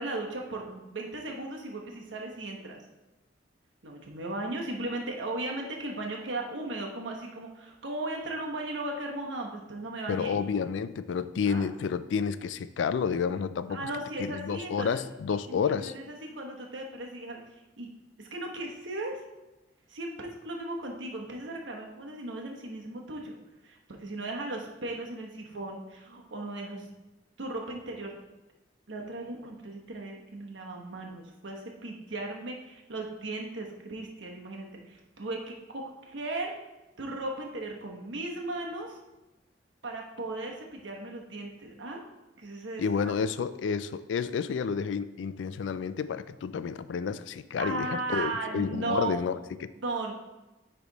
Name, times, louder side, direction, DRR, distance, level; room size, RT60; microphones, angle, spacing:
voice 1, 0.0-2.8 3.8-10.4 11.5-11.7 13.7-15.0 15.5-17.4 17.8-17.9 18.2-19.2 19.9-23.3 23.6-26.9 27.4-28.1 28.9-35.4 35.7-36.6 37.0-39.0 39.8-42.0 42.4-43.1 47.6-49.1 49.8-50.1, right 2 dB, 80° right, 1 dB, 1.1 m, -36 dB
voice 2, 10.1-13.8 14.2-15.9 42.8-49.7, left 6 dB, 75° left, 13 dB, 0.3 m, -30 dB
9.8 x 3.4 x 4.0 m, 1.0 s
head